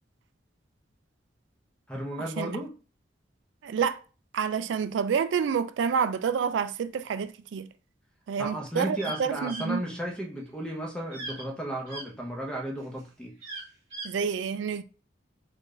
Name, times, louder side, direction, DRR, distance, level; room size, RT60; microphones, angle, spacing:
voice 1, 1.9-2.7 8.4-13.3, right 1 dB, 5° left, 0.9 m, -34 dB
voice 2, 3.6-4.0 4.3-7.7 8.3-9.8 14.0-14.8, right 6 dB, 80° right, 0.3 m, -28 dB
sound 1, 9.0-9.2 9.5-9.7 11.1-11.4 11.9-12.0 13.4-14.1, right 2 dB, 35° right, 1.8 m, -38 dB
4.2 x 2.5 x 3.2 m
head